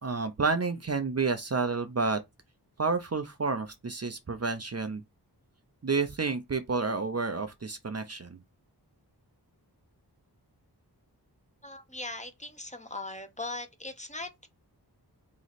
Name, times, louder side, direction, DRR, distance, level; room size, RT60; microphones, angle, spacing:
voice 1, 0.0-2.2 2.8-5.0 5.8-8.4, right 4 dB, 40° right, 0.7 m, -30 dB
voice 2, 11.6-14.5, left 2 dB, 15° left, 1.0 m, -39 dB
3.9 x 3.1 x 4.0 m
wide cardioid pair, 80°, 40 cm